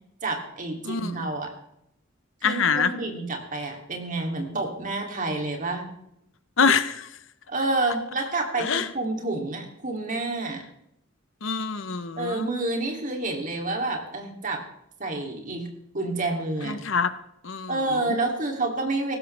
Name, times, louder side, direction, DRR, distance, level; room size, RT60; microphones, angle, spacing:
voice 1, 0.2-1.5 2.4-5.9 7.5-10.6 12.2-14.6 15.0-15.7 15.9-16.8 17.7-19.2, right 2 dB, 40° right, 2 dB, 3.1 m, -29 dB
voice 2, 0.8-1.3 2.4-2.9 6.6-7.1 8.6-8.9 11.4-12.5 16.6-17.1 17.4-18.2, left 5 dB, 70° left, 12 dB, 1.0 m, -25 dB
18.5 x 15.5 x 3.5 m, 0.78 s
head